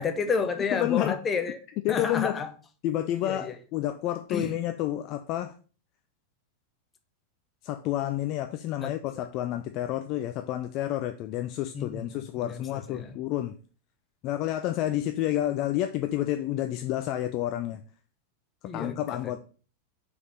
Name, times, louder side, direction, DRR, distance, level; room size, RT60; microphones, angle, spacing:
voice 1, 0.0-1.6 1.9-2.5 3.2-3.4 4.3-4.5 8.8-8.9 11.7-12.6 12.9-13.1 18.6-19.0, left 5 dB, 20° left, 0.9 m, -30 dB
voice 2, 0.7-1.2 1.8-2.4 2.8-5.5 7.6-13.6 14.2-17.8 18.7-19.4, left 13 dB, 40° left, 0.4 m, -29 dB
5.1 x 4.9 x 5.5 m
figure-of-eight pair, 90°, 0 cm